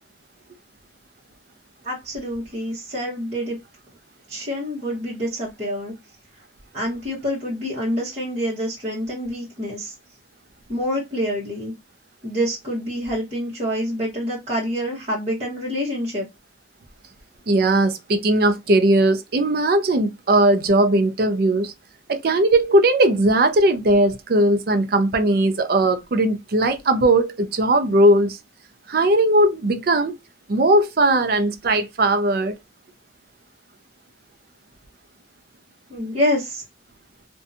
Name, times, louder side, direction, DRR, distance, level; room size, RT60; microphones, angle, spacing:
voice 1, 1.8-3.6 4.3-5.9 6.7-9.9 10.7-11.7 12.2-16.3 35.9-36.6, equal, 35° right, 0.9 m, -26 dB
voice 2, 17.5-21.7 22.1-28.4 28.9-30.1 30.5-32.6, right 1 dB, 50° right, 0.4 m, -18 dB
2.6 x 2.2 x 2.5 m
head